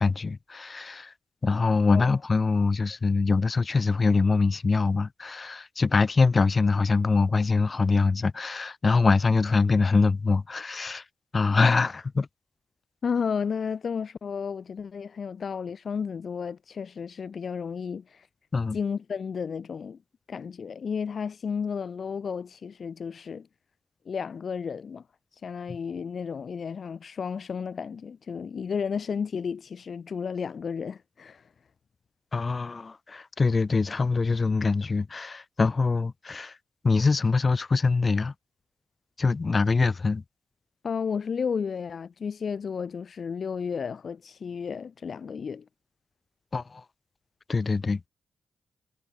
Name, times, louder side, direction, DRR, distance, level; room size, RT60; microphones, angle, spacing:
voice 1, 0.0-1.1 1.4-11.0 11.3-12.3 18.5-18.8 32.3-36.5 36.8-38.3 39.2-40.2 46.5-46.8 47.5-48.1, left 4 dB, 40° left, 0.6 m, -24 dB
voice 2, 13.0-18.3 18.7-20.0 20.3-23.5 24.0-25.0 25.3-31.5 40.8-45.6, left 6 dB, 55° left, 5.0 m, -32 dB
cardioid pair, 65°, 0 cm